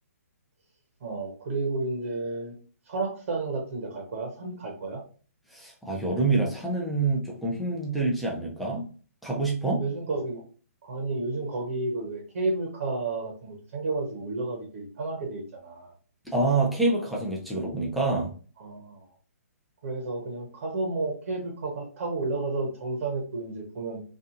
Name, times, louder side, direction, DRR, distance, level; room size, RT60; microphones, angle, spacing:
voice 1, 1.0-2.5 2.9-5.0 9.8-10.4 10.8-15.9 18.6-19.0 19.8-24.0, right 3 dB, 50° right, 1 dB, 0.8 m, -31 dB
voice 2, 5.5-8.9 9.2-9.8 16.3-18.3, right 3 dB, ahead, -3 dB, 0.6 m, -26 dB
2.6 x 2.4 x 2.4 m, 0.40 s
hypercardioid pair, 145°, 9 cm